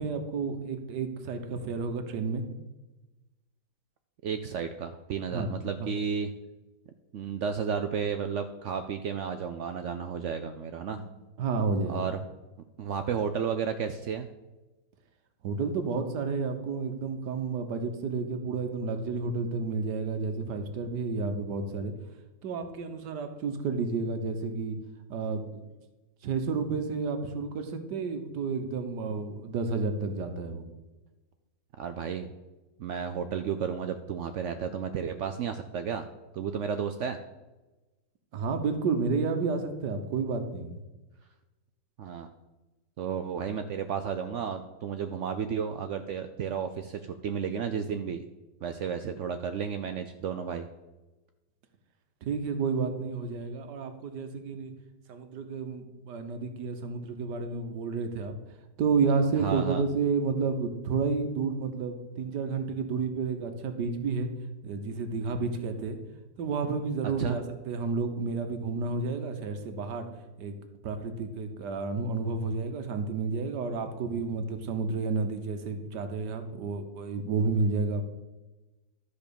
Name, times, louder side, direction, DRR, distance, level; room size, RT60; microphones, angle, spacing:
voice 1, 0.0-2.4 5.3-5.9 10.9-12.0 15.4-21.9 22.4-24.8 25.1-25.6 26.2-30.6 38.3-40.8 52.2-54.7 55.1-58.3 58.8-64.3 64.6-66.0 66.4-70.1 70.4-70.5 70.8-78.0, right 4 dB, 70° right, 7 dB, 1.6 m, -31 dB
voice 2, 4.2-6.3 7.1-11.0 11.9-12.2 12.8-14.3 31.8-32.3 32.8-36.1 36.3-37.2 42.0-42.3 43.0-48.2 48.6-50.7 59.4-59.8 67.2-67.4, right 7 dB, 85° right, 8 dB, 0.6 m, -32 dB
12.0 x 5.1 x 6.9 m, 1.1 s
omnidirectional pair, 1.9 m